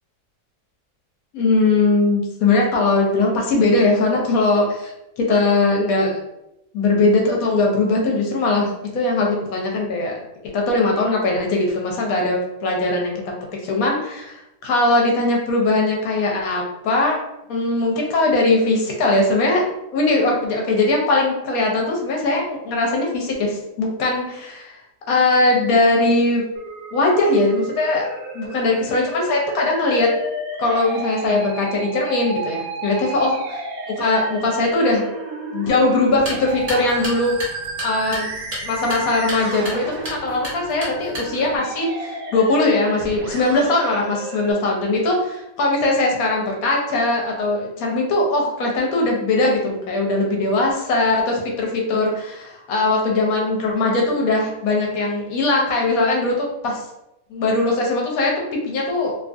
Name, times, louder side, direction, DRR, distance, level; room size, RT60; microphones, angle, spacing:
voice 1, 1.3-6.2 6.7-10.1 10.5-13.3 13.6-17.2 17.5-19.6 19.9-24.8 25.1-26.4 26.9-28.1 28.3-30.1 30.6-33.4 34.0-35.0 35.5-37.4 37.8-38.3 38.6-56.8 57.3-59.2, left 2 dB, 70° left, -1 dB, 1.0 m, -20 dB
Musical instrument, 26.6-44.5, right 2 dB, 70° right, 0.9 m, -32 dB
sound 1, 36.1-41.6, equal, 35° right, 0.7 m, -33 dB
2.8 x 2.3 x 2.5 m, 0.89 s
omnidirectional pair, 1.7 m